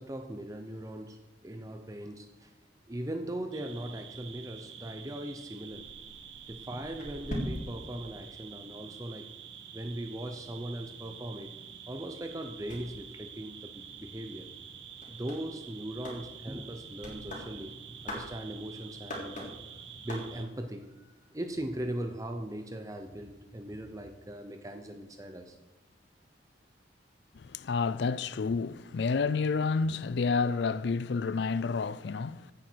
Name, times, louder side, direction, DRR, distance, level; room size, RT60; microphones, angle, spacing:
voice 1, 0.0-2.5 2.9-5.9 6.5-9.3 9.7-11.5 11.9-14.5 15.1-17.8 18.0-19.5 20.0-25.6, right 1 dB, 20° right, 0.7 m, -39 dB
sound 1, 3.5-20.4, right 7 dB, 75° right, 1.3 m, -48 dB
sound 2, 5.7-9.1 9.4-20.7, equal, 45° left, 3.5 m, -45 dB
voice 2, 27.3-32.5, left 4 dB, 65° left, 0.4 m, -30 dB
15.5 x 9.0 x 4.6 m
head